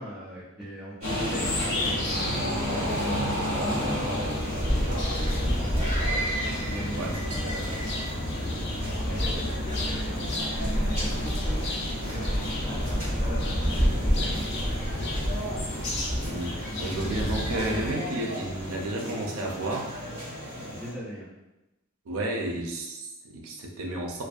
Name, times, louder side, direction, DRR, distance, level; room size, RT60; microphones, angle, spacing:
voice 1, 0.0-2.4 2.8-6.3 6.7-7.8 8.3-10.3 10.6-11.6 12.0-14.5 20.7-21.3, equal, ahead, -10 dB, 0.4 m, -40 dB
sound 1, 1.0-17.9, left 1 dB, 55° left, 0.5 m, -32 dB
sound 2, 1.0-20.9, equal, 35° right, 1.4 m, -34 dB
sound 3, 4.0-18.9, equal, 55° right, 0.8 m, -32 dB
voice 2, 16.2-19.9 22.1-24.2, right 1 dB, 80° right, 1 dB, 0.5 m, -32 dB
2.5 x 2.2 x 2.3 m, 0.98 s
head